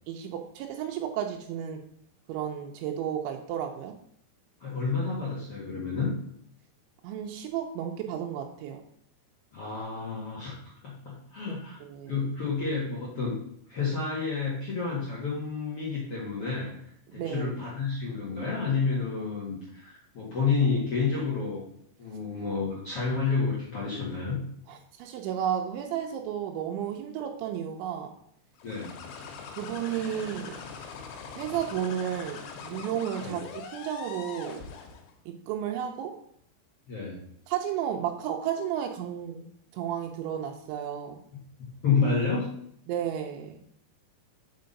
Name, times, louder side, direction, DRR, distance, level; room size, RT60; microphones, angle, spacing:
voice 1, 0.1-1.8 2.3-3.9 7.0-8.8 11.5-11.6 11.9-12.1 17.1-17.5 24.7-28.1 29.6-30.6 31.4-33.4 33.7-34.6 35.3-36.1 37.5-39.5 39.7-41.2 42.9-43.6, right 9 dB, 85° right, 2 dB, 3.0 m, -32 dB
voice 2, 4.6-6.1 9.5-10.6 10.8-11.8 12.1-13.4 13.7-16.7 17.1-21.6 22.0-24.4 28.6-29.0 33.2-33.4 36.9-37.2 41.3-42.5, left 4 dB, 60° left, -6 dB, 1.6 m, -30 dB
sound 1, 28.6-35.1, left 6 dB, 85° left, 3.6 m, -42 dB
6.1 x 5.7 x 5.2 m, 0.67 s
omnidirectional pair, 5.2 m